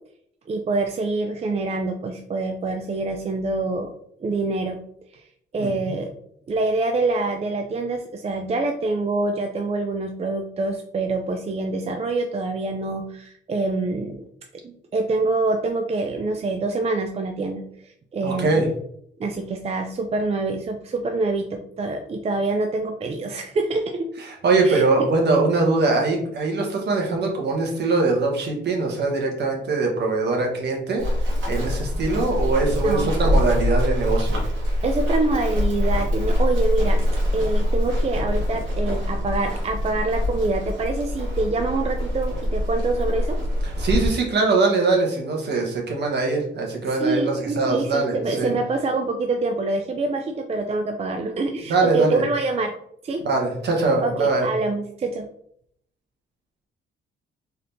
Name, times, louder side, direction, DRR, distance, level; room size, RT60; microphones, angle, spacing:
voice 1, 0.5-3.9 4.2-4.8 5.1-5.3 5.5-6.1 6.5-14.2 14.6-18.7 19.2-24.1 24.6-24.8 32.8-33.1 34.8-37.0 37.3-43.4 47.0-52.7 53.0-53.2 54.0-55.2, right 3 dB, 30° right, 5 dB, 0.4 m, -25 dB
voice 2, 5.6-5.9 18.2-18.7 24.2-31.0 31.5-34.4 43.6-48.5 51.7-52.2 53.2-54.5, right 3 dB, 60° right, 0 dB, 1.3 m, -22 dB
Run, 31.0-44.1, left 1 dB, 75° right, 1.4 m, -24 dB
4.0 x 3.4 x 2.7 m, 0.68 s
cardioid pair, 90°, 20 cm